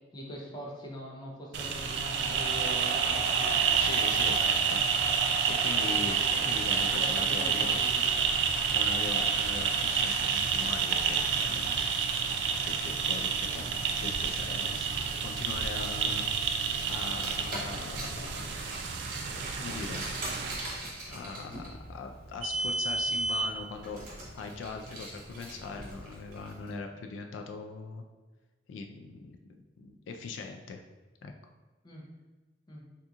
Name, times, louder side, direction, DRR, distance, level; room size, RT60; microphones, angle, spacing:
voice 1, 0.1-4.1 5.7-6.0 7.0-8.3 31.8-32.1 32.7-32.9, equal, 25° left, -2 dB, 0.5 m, -43 dB
sound 1, 1.5-20.5, right 6 dB, 65° right, 0.3 m, -29 dB
voice 2, 3.8-4.8 5.4-7.8 8.6-11.8 12.7-13.6 14.0-14.9 15.2-16.3 16.9-18.5 19.6-20.0 21.1-28.0 28.7-30.8 31.2-31.3, left 4 dB, 85° left, 4 dB, 0.3 m, -41 dB
Car, 17.0-26.5, right 1 dB, 45° right, 1.0 m, -37 dB
2.8 x 2.4 x 3.5 m, 1.2 s
head